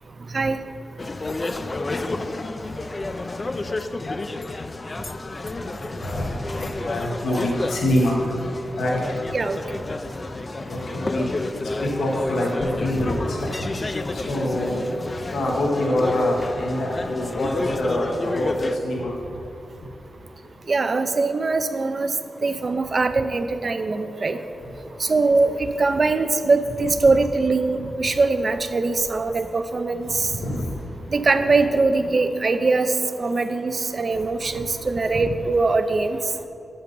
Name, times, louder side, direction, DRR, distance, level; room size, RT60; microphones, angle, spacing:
sound 1, 1.0-18.8, left 2 dB, 35° left, 0.3 m, -30 dB
voice 1, 6.0-8.2 8.8-9.0 10.7-11.2 12.0-12.5 12.8-13.5 14.3-14.8 15.3-19.1 30.4-30.6 31.4-31.7, left 1 dB, 90° left, -2 dB, 1.0 m, -25 dB
voice 2, 20.7-22.1 22.4-24.4 25.0-30.3 31.1-32.9 33.2-36.2, right 3 dB, 45° right, 10 dB, 0.4 m, -22 dB
6.6 x 5.6 x 5.2 m, 2.8 s
cardioid pair, 80°, 0 cm